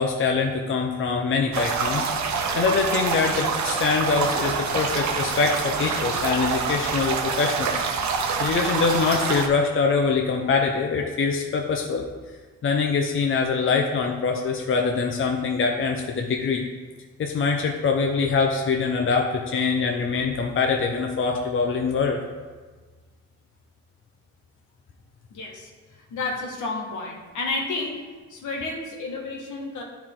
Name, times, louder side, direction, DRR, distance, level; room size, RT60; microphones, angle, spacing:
voice 1, 0.0-2.1 2.5-7.8 8.4-12.0 12.6-16.6 17.2-22.2, left 5 dB, 45° left, 2 dB, 0.8 m, -24 dB
sound 1, 1.5-9.5, right 5 dB, 65° right, 0.9 m, -26 dB
voice 2, 25.3-25.7 26.1-28.0 28.3-29.8, left 3 dB, 80° left, -1 dB, 1.6 m, -31 dB
10.5 x 4.7 x 3.8 m, 1.4 s
cardioid pair, 90°, 30 cm